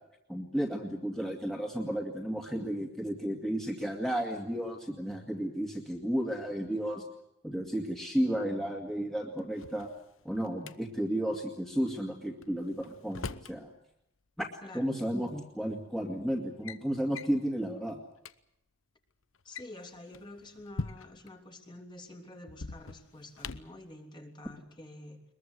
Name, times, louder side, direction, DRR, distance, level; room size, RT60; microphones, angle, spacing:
voice 1, 0.3-7.0 7.4-9.9 10.2-13.7 14.4-14.5 14.7-18.0, equal, ahead, 0 dB, 2.2 m, -33 dB
Drawer open or close, 9.4-10.7 12.4-13.6 14.9-15.0 15.8-16.0 16.4-16.8 17.1-17.4 17.9-18.0 18.2-18.3 19.3-21.3 22.5-23.8, left 3 dB, 80° left, 0.9 m, -42 dB
voice 2, 14.6-14.9 19.4-25.2, left 1 dB, 25° left, 4 dB, 2.9 m, -48 dB
22.5 x 22.0 x 8.1 m, 0.81 s
head